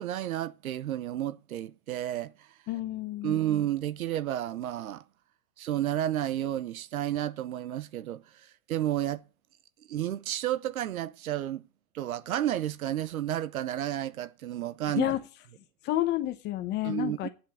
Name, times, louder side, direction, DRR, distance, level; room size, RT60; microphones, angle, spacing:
voice 1, 0.0-2.5 3.2-5.0 5.6-9.2 9.9-11.6 11.9-15.1 16.8-17.3, right 12 dB, 80° right, 0.9 m, -31 dB
voice 2, 2.7-3.4 15.0-15.2 15.8-17.3, left 14 dB, 25° left, 0.9 m, -30 dB
8.9 x 7.4 x 7.1 m
hypercardioid pair, 140°, 42 cm